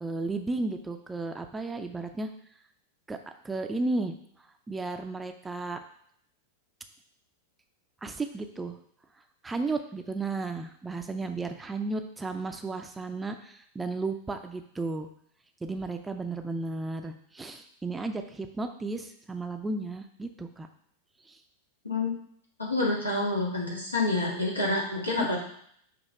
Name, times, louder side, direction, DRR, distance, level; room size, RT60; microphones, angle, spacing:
voice 1, 0.0-2.3 3.1-3.2 3.4-4.1 4.7-5.8 8.0-8.8 9.4-15.1 15.6-20.7 21.3-21.4 25.2-25.4, right 3 dB, 10° right, 6 dB, 0.5 m, -34 dB
voice 2, 22.6-25.4, left 2 dB, 85° left, -3 dB, 1.6 m, -28 dB
6.2 x 3.0 x 5.1 m, 0.67 s
figure-of-eight pair, 90°, 0 cm